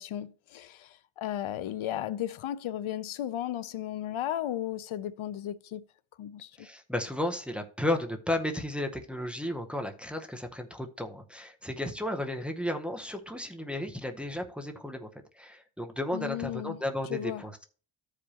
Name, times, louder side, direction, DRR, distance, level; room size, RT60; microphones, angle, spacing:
voice 1, 0.0-5.8 6.2-6.5 16.1-16.8 17.1-17.4, left 12 dB, 75° left, 0.6 m, -35 dB
voice 2, 6.6-15.1 15.3-17.6, left 1 dB, ahead, 0.7 m, -33 dB
13.5 x 4.9 x 2.8 m
wide cardioid pair, 155°, 49 cm